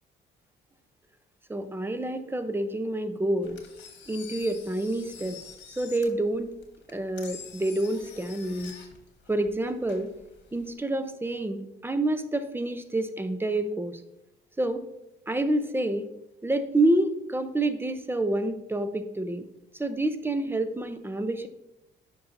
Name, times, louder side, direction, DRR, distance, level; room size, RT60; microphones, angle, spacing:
voice 1, 1.5-3.6 4.1-5.4 5.7-6.5 6.9-8.7 9.3-10.1 10.5-14.0 14.6-14.9 15.3-16.1 16.4-19.5 19.7-21.5, right 1 dB, 10° right, 10 dB, 0.6 m, -28 dB
Engine, 3.4-10.7, left 6 dB, 65° left, 1.4 m, -47 dB
9.5 x 5.5 x 2.7 m, 0.85 s
cardioid pair, 90°, 20 cm